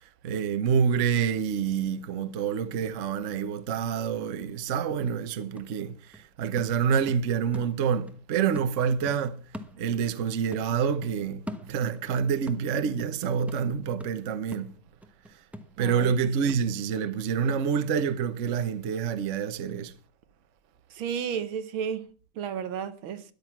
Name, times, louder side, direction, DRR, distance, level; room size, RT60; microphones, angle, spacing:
voice 1, 0.2-9.4 9.8-14.7 15.8-19.9, right 7 dB, 50° right, 1.0 m, -27 dB
sound 1, 4.6-4.7 5.1-8.2 8.5-10.3 10.5-12.1 12.5-18.1 18.5-18.6, left 1 dB, ahead, 0.6 m, -45 dB
voice 2, 15.8-16.5 20.9-22.1 22.4-23.2, right 7 dB, 75° right, 1.8 m, -33 dB
13.5 x 11.0 x 6.0 m
omnidirectional pair, 2.3 m